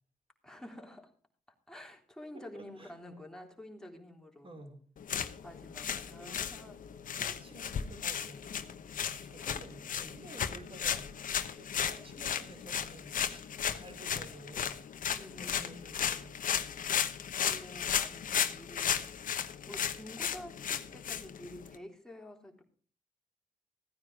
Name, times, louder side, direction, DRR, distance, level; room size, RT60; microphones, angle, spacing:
voice 1, 0.4-1.1 1.7-4.5 5.4-6.8 15.1-15.9 17.0-22.6, left 1 dB, 5° left, 2 dB, 3.4 m, -50 dB
voice 2, 2.3-2.9 4.4-4.8 6.1-6.4 7.2-8.4 9.0-11.1 11.6-13.4 13.7-14.8 15.4-16.4, right 2 dB, 40° right, 4 dB, 4.9 m, -51 dB
sound 1, 5.0-21.8, left 8 dB, 75° left, 1.0 m, -35 dB
16.0 x 9.6 x 5.0 m, 0.43 s
cardioid pair, 65°, 14 cm